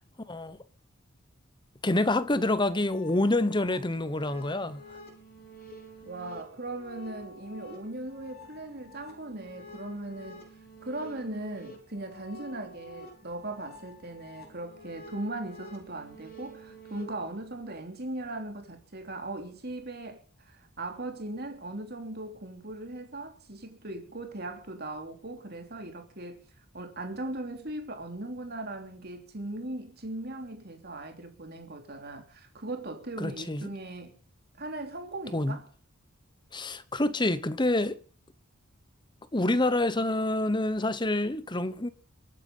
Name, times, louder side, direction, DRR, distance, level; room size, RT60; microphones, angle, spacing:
voice 1, 1.8-4.8 33.2-33.7 35.3-35.6 36.5-38.0 39.3-41.9, left 2 dB, 20° left, 1.0 m, -27 dB
sound 1, 2.7-17.1, equal, 45° left, 4.4 m, -49 dB
voice 2, 6.0-10.4 10.8-20.2 20.5-26.4 26.7-34.2 34.6-35.7, right 2 dB, 45° right, 3.2 m, -38 dB
23.5 x 9.6 x 5.6 m
head